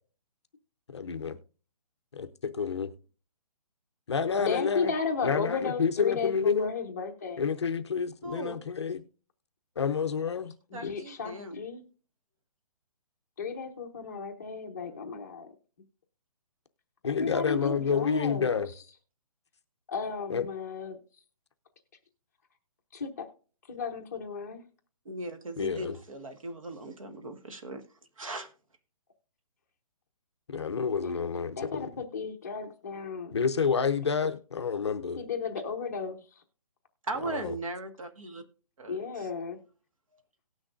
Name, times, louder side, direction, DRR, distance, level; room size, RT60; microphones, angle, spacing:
voice 1, 0.9-1.4 2.1-2.9 4.1-4.9 5.2-6.7 7.4-9.0 9.8-10.5 10.8-11.0 17.0-18.7 20.3-20.4 25.6-25.9 30.5-31.9 33.3-35.2 37.3-37.5, left 6 dB, 45° left, 0.6 m, -29 dB
voice 2, 4.4-7.5 10.7-11.8 13.4-15.5 17.1-18.5 19.9-21.0 22.9-23.3 23.7-24.7 31.0-31.2 31.6-33.3 35.2-36.2 38.9-39.6, left 5 dB, 25° left, 0.9 m, -34 dB
voice 3, 8.2-8.6 10.7-11.6 14.8-15.0 25.0-27.8 28.2-28.5 37.0-38.4 38.8-39.3, right 2 dB, 55° right, 1.5 m, -38 dB
18.5 x 6.3 x 2.5 m
hypercardioid pair, 175°, 20 cm